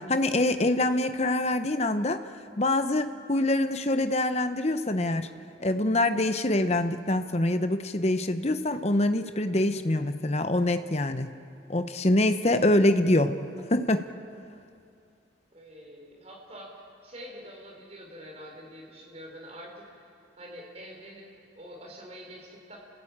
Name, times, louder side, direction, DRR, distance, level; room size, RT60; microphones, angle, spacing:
voice 1, 0.0-2.2 2.6-5.3 5.6-11.4 11.7-13.4 13.7-14.1, left 1 dB, 35° left, 10 dB, 0.9 m, -25 dB
voice 2, 15.5-16.7 17.0-20.1 20.4-21.3 21.5-22.8, equal, 35° right, 0 dB, 4.6 m, -45 dB
29.5 x 16.5 x 8.8 m, 2.5 s
head